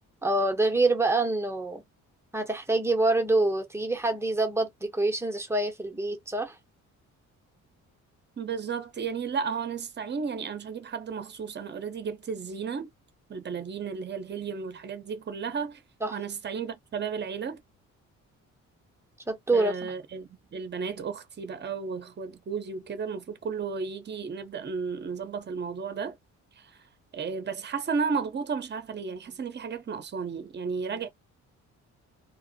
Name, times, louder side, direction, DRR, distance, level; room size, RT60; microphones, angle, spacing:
voice 1, 0.2-1.8 2.3-6.6 16.0-16.2 19.3-20.0, right 2 dB, 10° right, 0.8 m, -26 dB
voice 2, 8.4-12.9 13.3-15.8 16.1-17.6 19.5-26.2 26.5-26.9 27.1-31.1, right 5 dB, 35° right, 0.8 m, -33 dB
3.0 x 2.0 x 2.6 m
cardioid pair, 90°, 30 cm